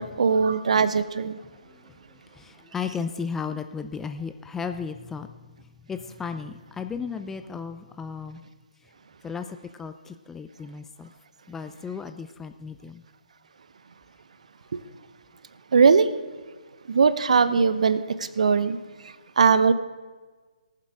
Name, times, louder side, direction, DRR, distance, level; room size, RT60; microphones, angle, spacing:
voice 1, 0.0-1.4 14.7-14.8 15.7-16.1 16.9-18.8 19.4-19.7, right 5 dB, 55° right, 14 dB, 0.7 m, -20 dB
voice 2, 1.5-8.5 8.8-8.9 9.2-11.1 11.5-13.0, left 6 dB, 5° left, 8 dB, 0.3 m, -35 dB
18.0 x 7.5 x 4.9 m, 1.4 s
figure-of-eight pair, 140°, 4 cm